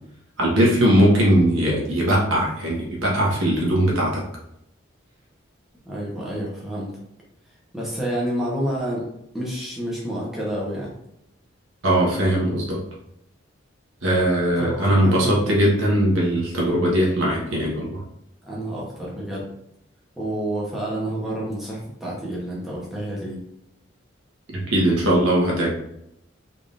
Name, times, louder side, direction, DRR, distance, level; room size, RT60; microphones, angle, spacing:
voice 1, 0.4-4.2 11.8-12.8 14.0-18.0 24.7-25.7, right 1 dB, 90° right, -3 dB, 1.4 m, -20 dB
voice 2, 5.9-6.9 7.7-9.0 9.3-10.9 14.6-15.3 18.4-19.5 20.2-23.4, right 1 dB, ahead, -6 dB, 1.0 m, -29 dB
3.7 x 3.6 x 2.6 m, 0.80 s
head